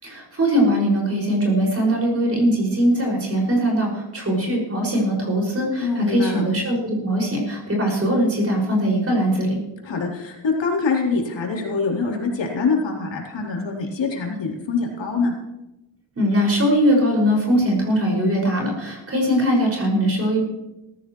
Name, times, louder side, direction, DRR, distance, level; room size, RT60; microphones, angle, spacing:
voice 1, 0.0-9.6 16.1-20.4, equal, 30° right, -2 dB, 6.2 m, -21 dB
voice 2, 5.8-6.5 9.8-15.4, left 4 dB, 70° left, -1 dB, 3.9 m, -24 dB
19.5 x 15.0 x 3.2 m, 0.95 s
wide cardioid pair, 160°, 45 cm